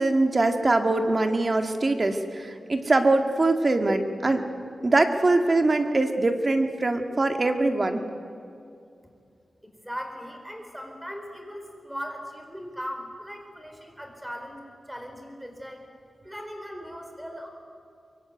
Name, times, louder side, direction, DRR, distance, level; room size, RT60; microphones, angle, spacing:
voice 1, 0.0-4.5 4.8-8.0, right 2 dB, 35° right, 6 dB, 2.0 m, -23 dB
voice 2, 9.6-14.6 14.9-15.8 16.2-17.5, equal, 5° right, 4 dB, 4.5 m, -38 dB
23.5 x 23.5 x 9.3 m, 2.4 s
wide cardioid pair, 125°, 0 cm